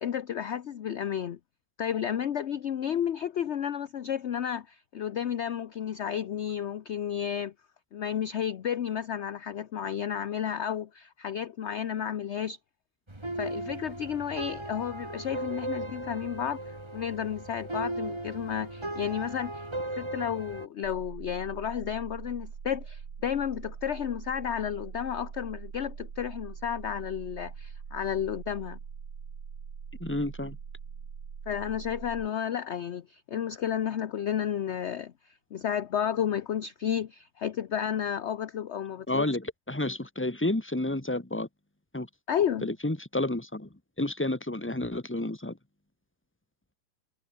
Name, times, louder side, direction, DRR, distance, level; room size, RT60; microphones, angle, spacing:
voice 1, 0.0-1.4 1.8-7.5 7.9-12.6 13.4-19.7 20.0-28.8 31.5-39.3 42.3-42.7, left 9 dB, 55° left, 0.8 m, -32 dB
sound 1, 13.1-20.7, right 1 dB, 15° right, 2.7 m, -37 dB
sound 2, 20.8-32.3, right 6 dB, 75° right, 2.7 m, -42 dB
voice 2, 30.0-30.6 39.1-41.5 41.9-42.1 42.6-43.7 44.0-45.6, left 1 dB, 5° left, 1.9 m, -30 dB
omnidirectional pair, 2.0 m